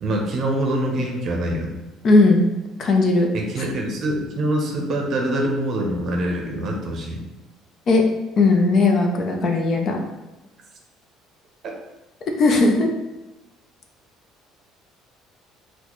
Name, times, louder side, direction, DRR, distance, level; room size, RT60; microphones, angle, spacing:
voice 1, 0.0-1.8 3.3-7.2, right 1 dB, 45° right, 1 dB, 0.6 m, -24 dB
voice 2, 2.0-2.5 2.8-3.3 7.9-8.0 8.4-10.0 12.4-12.9, left 3 dB, 40° left, 2 dB, 0.5 m, -17 dB
4.0 x 2.2 x 3.0 m, 1.0 s
cardioid pair, 140°, 0 cm